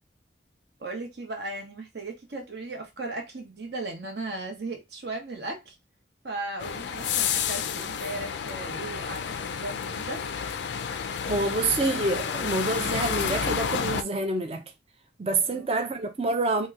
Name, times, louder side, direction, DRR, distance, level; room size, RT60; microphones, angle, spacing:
voice 1, 0.8-5.8 6.2-10.2 15.4-15.7, right 2 dB, 65° right, 1.0 m, -36 dB
sound 1, 6.6-14.0, left 7 dB, 70° left, 0.4 m, -30 dB
voice 2, 11.2-14.6 15.2-16.7, right 2 dB, 30° right, 0.5 m, -27 dB
2.8 x 2.2 x 3.5 m
head